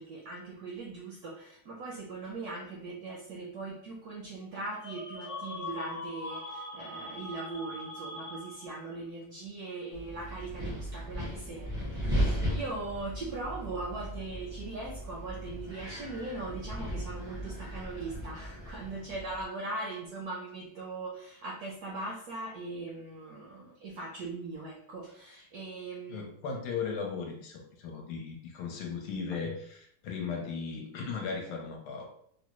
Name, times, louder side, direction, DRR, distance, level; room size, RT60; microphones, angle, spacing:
voice 1, 0.0-26.3, right 3 dB, 75° right, -2 dB, 0.9 m, -40 dB
sound 1, 4.8-9.0, left 2 dB, 50° left, 0.6 m, -41 dB
Wind, 9.9-19.4, equal, 5° right, 0.4 m, -36 dB
voice 2, 26.1-32.1, left 5 dB, 75° left, 2 dB, 1.3 m, -37 dB
3.6 x 2.0 x 3.0 m, 0.65 s
omnidirectional pair, 2.2 m